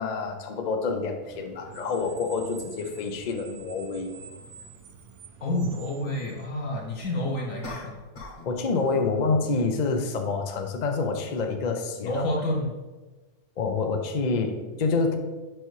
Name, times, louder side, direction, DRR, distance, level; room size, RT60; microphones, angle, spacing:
voice 1, 0.0-4.1 8.5-12.3 13.6-15.1, left 4 dB, 85° left, 5 dB, 0.3 m, -27 dB
Screech, 1.2-7.0, right 6 dB, 90° right, 1.2 m, -47 dB
voice 2, 5.4-8.0 12.0-12.7, left 1 dB, 60° left, -2 dB, 1.1 m, -29 dB
sound 1, 7.6-8.5 8.8-9.1, left 2 dB, 35° left, 1.0 m, -40 dB
6.3 x 5.5 x 3.1 m, 1.2 s
omnidirectional pair, 1.7 m